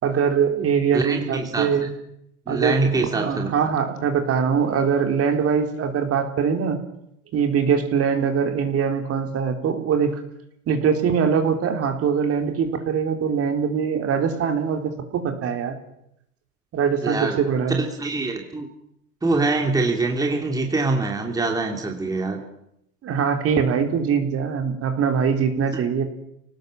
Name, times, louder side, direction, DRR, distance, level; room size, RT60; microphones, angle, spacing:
voice 1, 0.0-1.9 2.5-6.8 7.3-10.2 10.7-15.8 16.7-17.8 23.0-26.0, right 6 dB, 30° right, 6 dB, 3.7 m, -22 dB
voice 2, 0.9-1.7 2.5-3.6 17.0-17.4 17.8-18.7 19.2-22.4 25.7-25.8, right 3 dB, 10° right, 2 dB, 2.9 m, -24 dB
28.0 x 18.5 x 7.7 m, 0.80 s
hypercardioid pair, 120°, 46 cm